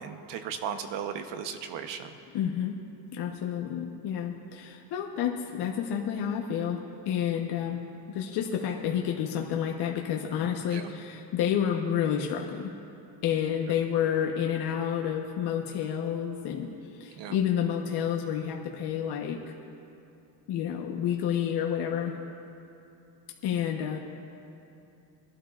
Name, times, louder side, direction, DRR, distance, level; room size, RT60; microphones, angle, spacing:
voice 1, 0.0-2.1 10.7-10.9 17.2-17.4, right 8 dB, 80° right, 8 dB, 1.0 m, -36 dB
voice 2, 2.3-2.8 3.1-6.8 7.1-7.8 8.1-12.7 13.2-16.7 17.0-19.4 20.5-22.1 23.4-24.0, left 9 dB, 70° left, 1 dB, 1.1 m, -29 dB
23.0 x 12.0 x 2.5 m, 2.7 s
cardioid pair, 115°, 41 cm